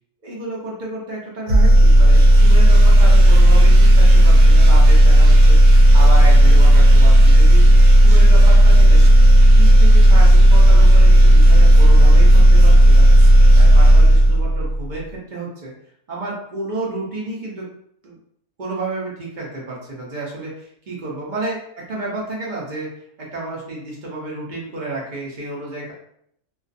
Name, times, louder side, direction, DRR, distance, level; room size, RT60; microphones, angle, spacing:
voice 1, 0.2-7.8 8.0-9.0 9.6-13.1 13.5-15.7 16.1-17.6 18.0-18.2 18.6-22.9 23.2-25.9, right 2 dB, 45° right, -4 dB, 0.7 m, -30 dB
sound 1, 1.5-14.9, right 1 dB, 80° right, 1.0 m, -9 dB
2.3 x 2.3 x 2.5 m, 0.70 s
omnidirectional pair, 1.4 m